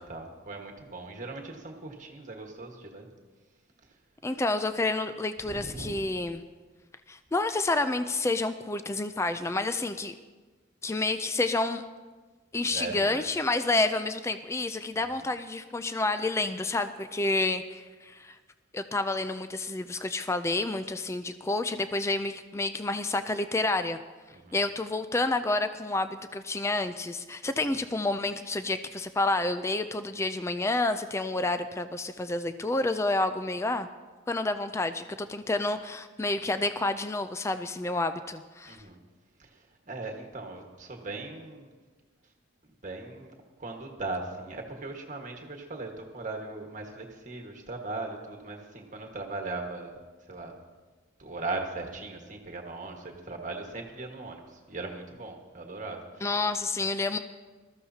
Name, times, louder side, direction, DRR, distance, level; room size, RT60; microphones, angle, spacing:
voice 1, 0.1-3.1 5.4-6.3 12.7-13.3 14.9-15.3 24.3-24.6 38.6-39.0 39.4-41.7 42.8-50.0 50.3-50.6 51.2-56.3, right 3 dB, 40° right, 1 dB, 1.5 m, -39 dB
voice 2, 4.2-6.4 7.1-10.1 10.8-11.8 12.5-18.4 18.7-24.0 24.5-33.9 34.3-38.8 56.2-57.2, left 2 dB, 15° left, 10 dB, 0.3 m, -29 dB
20.0 x 13.5 x 2.8 m, 1.3 s
head